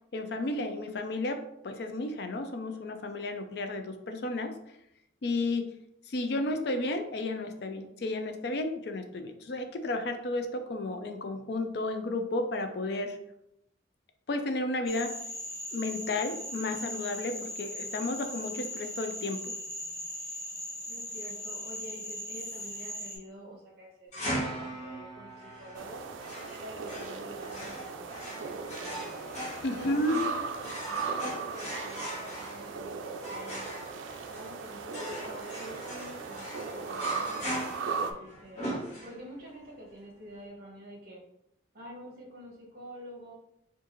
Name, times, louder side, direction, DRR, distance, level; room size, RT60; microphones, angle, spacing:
voice 1, 0.1-4.6 5.2-5.7 6.1-13.2 14.3-15.1 15.7-19.5 29.6-30.2, left 2 dB, 55° left, 7 dB, 0.4 m, -32 dB
Frog, 14.9-23.2, left 1 dB, 20° left, 0.8 m, -39 dB
voice 2, 20.9-26.0 26.6-29.0 29.7-33.7 34.3-38.6 39.0-41.2 41.7-43.3, equal, 50° right, -3 dB, 1.2 m, -47 dB
sound 1, 24.1-39.5, equal, 35° left, 1.1 m, -40 dB
sound 2, 25.7-38.1, right 5 dB, 85° right, 0.4 m, -37 dB
4.5 x 2.5 x 3.0 m, 0.81 s
head